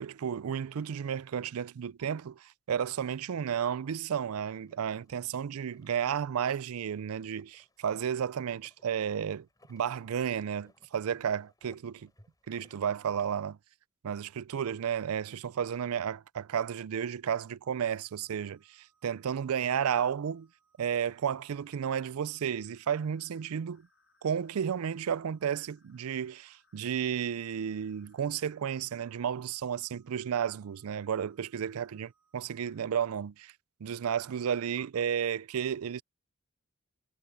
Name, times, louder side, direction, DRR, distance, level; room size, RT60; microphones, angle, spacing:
voice 1, 0.0-12.1 12.5-13.6 14.0-20.5 20.8-23.9 24.2-33.5 33.8-36.0, right 8 dB, 75° right, 0.4 m, -32 dB
sound 1, 3.3-13.6, left 1 dB, 15° left, 6.5 m, -66 dB
sound 2, 17.6-32.9, right 2 dB, 60° left, 4.4 m, -72 dB
head